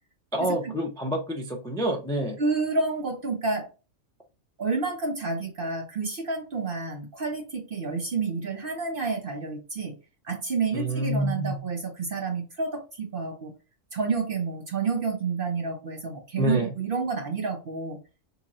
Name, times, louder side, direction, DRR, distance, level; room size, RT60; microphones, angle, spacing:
voice 1, 0.3-2.4 10.7-11.6 16.4-16.7, right 1 dB, 5° left, 2 dB, 0.3 m, -27 dB
voice 2, 2.4-3.7 4.6-9.9 10.2-13.5 13.9-18.0, right 4 dB, 55° right, 3 dB, 0.7 m, -29 dB
4.2 x 2.9 x 2.5 m, 0.30 s
omnidirectional pair, 1.4 m